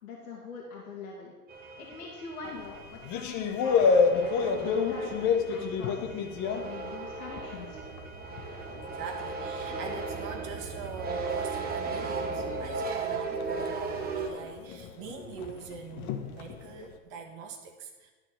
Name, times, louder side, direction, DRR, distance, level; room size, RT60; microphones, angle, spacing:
voice 1, 0.0-1.3 1.8-7.8, left 4 dB, 70° left, -2 dB, 2.1 m, -44 dB
sound 1, 1.5-14.3, right 4 dB, 20° right, 1.2 m, -37 dB
sound 2, 2.4-7.6 8.0-16.9, left 5 dB, 40° left, 1.2 m, -31 dB
voice 2, 8.8-18.1, right 5 dB, 45° right, 2 dB, 1.5 m, -43 dB
12.0 x 4.5 x 7.5 m, 1.3 s
hypercardioid pair, 105°, 45 cm